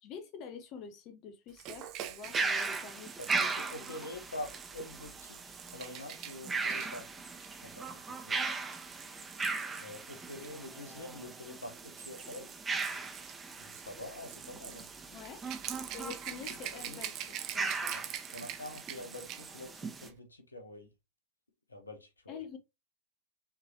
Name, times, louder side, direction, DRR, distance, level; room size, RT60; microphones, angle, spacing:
voice 1, 0.0-3.5 4.0-4.1 15.1-15.4 15.9-18.0 22.3-22.6, left 6 dB, 40° left, 0.7 m, -47 dB
Rattle / Rattle (instrument), 1.6-10.6 11.5-19.6 19.9-20.1, right 11 dB, 40° right, 0.7 m, -46 dB
sound 1, 2.2-20.1, right 4 dB, 15° right, 0.9 m, -38 dB
voice 2, 3.2-5.4 5.7-7.1 7.6-8.4 9.8-12.6 13.6-14.9 16.7-17.1 17.9-18.0 18.3-20.9 21.7-22.4, left 1 dB, 80° left, 1.0 m, -46 dB
5.8 x 3.1 x 2.7 m
figure-of-eight pair, 90°, 0 cm